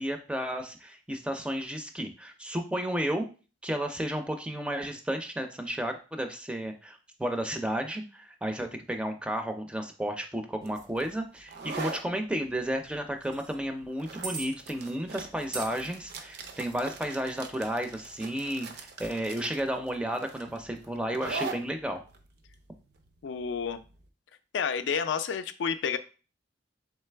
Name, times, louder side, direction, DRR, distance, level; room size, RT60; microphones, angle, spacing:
voice 1, 0.0-3.3 3.6-22.0, right 1 dB, 5° right, 6 dB, 0.4 m, -32 dB
sound 1, 10.6-24.0, right 3 dB, 60° right, 0.5 m, -42 dB
sound 2, 13.2-13.6 14.2-14.5 15.5-16.8 18.8-19.1, right 4 dB, 90° right, 1.2 m, -40 dB
voice 2, 23.2-23.8 24.5-26.0, left 6 dB, 80° left, 11 dB, 0.3 m, -30 dB
3.7 x 3.2 x 3.3 m, 0.35 s
head